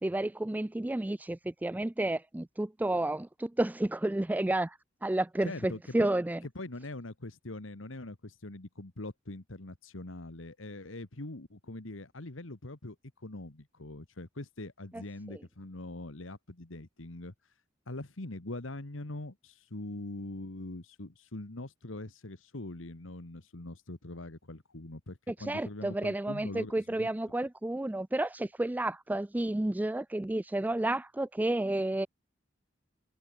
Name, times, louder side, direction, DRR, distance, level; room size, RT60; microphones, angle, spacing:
voice 1, 0.0-6.4 14.9-15.0 15.3-15.4 25.3-32.1, right 1 dB, 10° right, 0.3 m, -31 dB
voice 2, 5.4-6.1 6.6-17.3 17.9-27.1, left 2 dB, 80° left, 1.9 m, -42 dB
head